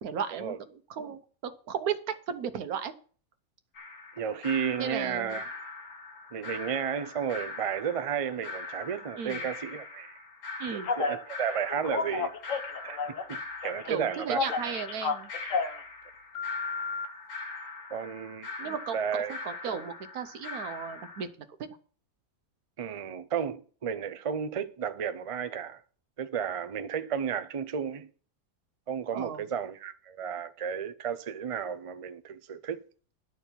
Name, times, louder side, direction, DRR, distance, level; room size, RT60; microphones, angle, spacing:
voice 1, 0.0-0.5 0.9-2.9 4.8-5.3 9.2-9.4 10.6-10.9 13.9-15.3 18.6-19.0 19.3-21.3 29.1-29.4, right 7 dB, 80° right, 1.4 m, -35 dB
sound 1, 3.7-21.2, left 3 dB, 80° left, 2.4 m, -42 dB
voice 2, 4.2-5.5 6.3-10.2 10.7-12.3 12.8-13.0 13.3-14.5 17.9-18.5 18.9-19.4 22.8-25.8 26.2-28.1 28.9-32.8, right 7 dB, 60° right, 0.3 m, -33 dB
Telephone, 10.8-11.2 11.7-13.3 13.6-15.8 16.3-17.1, left 5 dB, 60° left, 1.3 m, -31 dB
11.0 x 4.5 x 6.8 m
omnidirectional pair, 1.5 m